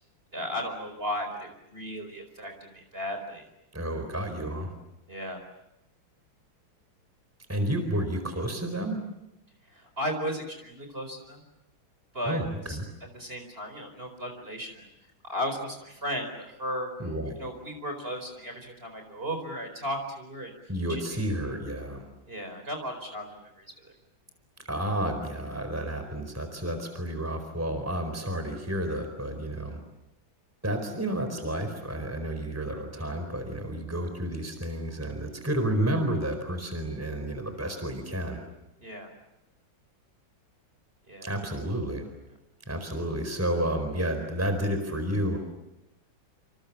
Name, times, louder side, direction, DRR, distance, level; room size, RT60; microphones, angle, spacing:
voice 1, 0.3-3.5 5.1-5.4 9.6-11.4 12.1-12.4 12.7-12.8 13.1-14.9 15.2-16.9 17.4-20.5 20.9-21.2 22.3-23.3 23.6-23.9 38.8-39.1 41.1-41.4, equal, 30° right, 5 dB, 4.7 m, -35 dB
voice 2, 3.7-4.7 7.5-9.0 12.2-12.8 17.0-17.3 20.7-22.1 24.6-29.8 30.6-38.4 41.2-42.1 42.7-45.4, right 1 dB, 5° right, 7 dB, 4.4 m, -31 dB
28.0 x 27.5 x 7.4 m, 0.90 s
omnidirectional pair, 2.1 m